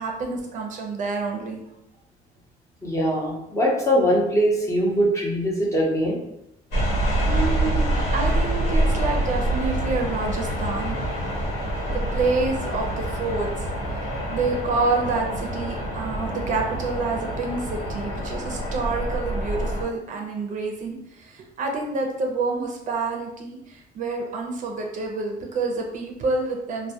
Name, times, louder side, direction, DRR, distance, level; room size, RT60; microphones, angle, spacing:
voice 1, 0.0-1.6 7.3-11.0 11.9-26.9, right 3 dB, 50° right, 1 dB, 0.4 m, -28 dB
voice 2, 2.8-6.2, equal, 15° left, -3 dB, 0.7 m, -22 dB
sound 1, 6.7-19.8, right 1 dB, 90° left, 1.1 m, -26 dB
2.1 x 2.1 x 2.7 m, 0.82 s
cardioid pair, 110°, 17 cm